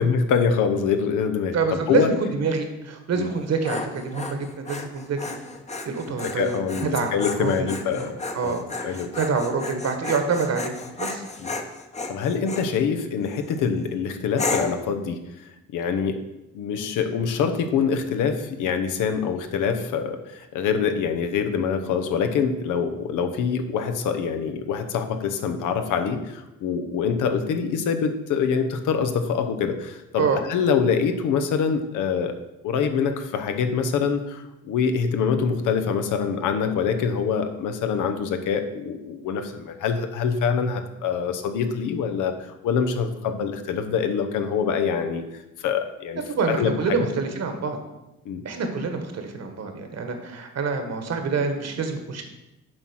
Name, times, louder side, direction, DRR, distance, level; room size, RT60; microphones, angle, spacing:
voice 1, 0.0-1.6 1.9-2.1 3.1-3.3 6.2-8.1 8.4-9.1 11.4-11.5 12.1-15.2 15.7-16.2 16.5-32.3 32.6-46.2 46.5-47.1 48.2-48.4, left 6 dB, 85° left, 8 dB, 0.9 m, -25 dB
voice 2, 1.5-5.3 5.8-7.1 7.4-8.1 8.3-11.2 30.2-30.4 46.3-47.8 48.4-52.2, right 4 dB, 55° right, 6 dB, 1.5 m, -26 dB
Dog, 3.3-12.7 13.3-13.7 14.4-14.9, left 3 dB, 25° left, 0.9 m, -33 dB
7.6 x 4.4 x 6.3 m, 0.95 s
cardioid pair, 90°, 30 cm